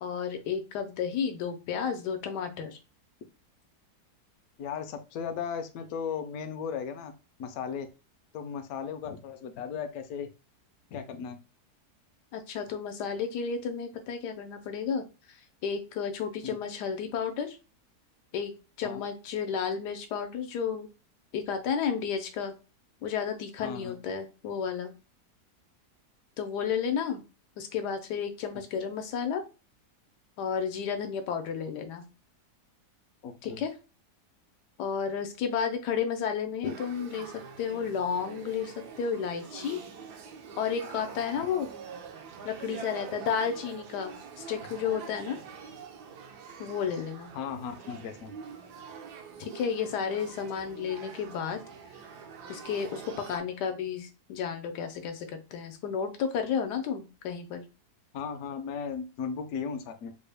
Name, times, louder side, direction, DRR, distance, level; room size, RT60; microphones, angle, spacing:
voice 1, 0.0-2.8 12.3-15.4 15.6-17.6 18.3-18.5 18.8-20.9 21.3-22.5 23.0-24.9 26.4-27.2 27.6-29.4 30.4-32.0 33.4-33.7 34.8-37.3 37.6-39.8 40.6-41.7 42.4-44.1 44.5-45.4 46.6-47.3 49.4-51.6 52.5-57.6, left 7 dB, 85° left, 6 dB, 1.2 m, -32 dB
voice 2, 4.6-7.1 7.4-7.9 8.3-10.3 10.9-11.4 16.4-16.6 18.8-19.0 23.6-24.0 33.2-33.6 36.6-36.7 41.4-41.5 47.3-48.3 58.1-60.1, left 6 dB, 70° left, 7 dB, 1.0 m, -36 dB
Male speech man speaking / Child speech kid speaking / Conversation, 36.6-53.4, right 6 dB, 80° right, 1.2 m, -45 dB
3.8 x 2.1 x 3.3 m, 0.32 s
omnidirectional pair, 1.7 m